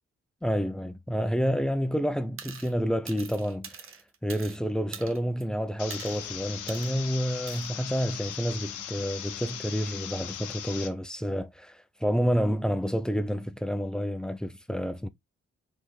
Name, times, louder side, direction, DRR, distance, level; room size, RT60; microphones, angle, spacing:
voice 1, 0.4-3.9 4.2-15.1, equal, ahead, 0.6 m, -29 dB
sound 1, 2.4-2.7 3.1-4.6 4.9-5.4 5.9-6.2 6.7-6.9 7.5-7.7, right 6 dB, 45° right, 0.9 m, -43 dB
sound 2, 5.8-10.9, left 10 dB, 85° left, 0.7 m, -39 dB
4.1 x 3.1 x 3.9 m
supercardioid pair, 60°, 30 cm